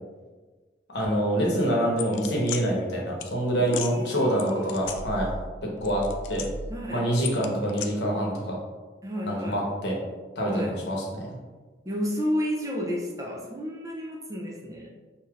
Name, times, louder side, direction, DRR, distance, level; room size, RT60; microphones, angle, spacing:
voice 1, 0.9-5.3 5.8-6.0 6.3-6.4 6.9-8.6 9.2-9.9 10.4-11.4, right 1 dB, 65° left, -3 dB, 1.0 m, -26 dB
sound 1, 2.0-2.6 3.2-3.3 3.7-3.9 4.4-5.5 5.8-6.8 7.2-7.9, left 4 dB, 85° left, 0.4 m, -35 dB
voice 2, 3.6-5.0 6.7-7.1 9.0-9.6 10.4-10.7 11.8-14.9, equal, 20° right, -2 dB, 0.4 m, -31 dB
4.7 x 2.8 x 2.4 m, 1.3 s
head